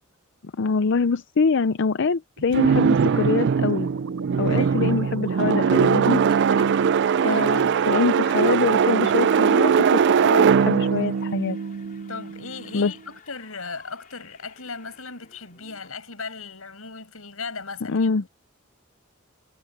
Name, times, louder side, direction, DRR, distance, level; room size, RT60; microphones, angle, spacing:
voice 1, 0.6-3.9 4.4-6.2 7.2-11.6 12.7-12.9 17.9-18.2, left 4 dB, 60° left, 0.5 m, -24 dB
sound 1, 2.4-10.7, right 3 dB, 85° right, 3.1 m, -45 dB
sound 2, 2.5-12.5, right 6 dB, 55° right, 0.4 m, -20 dB
voice 2, 4.5-4.9 6.3-6.9 7.2-7.6 12.1-18.1, left 4 dB, 85° left, 6.4 m, -38 dB
sound 3, 8.7-15.9, left 5 dB, 40° left, 4.7 m, -54 dB
head